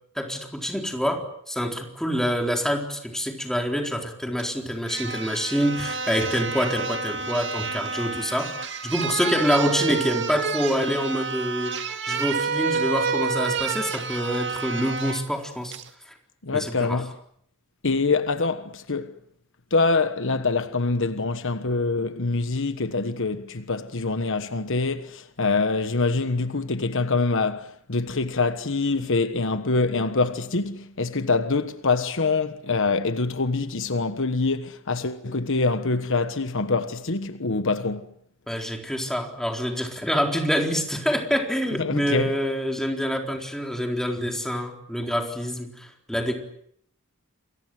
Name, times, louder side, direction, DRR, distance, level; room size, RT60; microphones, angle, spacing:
voice 1, 0.2-15.7 16.5-17.0 38.5-46.3, equal, ahead, 4.1 m, -26 dB
sound 1, 4.4-4.5 4.9-15.2 15.7-15.9, right 4 dB, 55° right, 2.1 m, -29 dB
voice 2, 16.4-17.1 17.8-19.1 19.7-38.0 41.8-42.4, left 3 dB, 60° left, 1.3 m, -25 dB
28.5 x 23.0 x 7.8 m
head